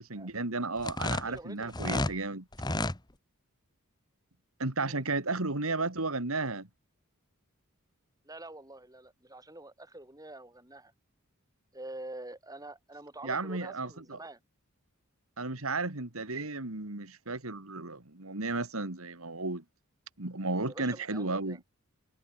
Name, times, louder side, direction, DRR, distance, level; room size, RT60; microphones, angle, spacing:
voice 1, 0.0-2.4 4.6-6.7 13.2-14.2 15.4-19.6 20.2-21.6, right 3 dB, 85° right, 2.7 m, -33 dB
sound 1, 0.8-2.2 2.5-3.0, left 2 dB, 20° left, 1.5 m, -31 dB
voice 2, 1.2-2.1 4.8-5.0 8.2-10.9 11.7-14.4 20.6-21.6, right 2 dB, 15° right, 7.2 m, -46 dB
head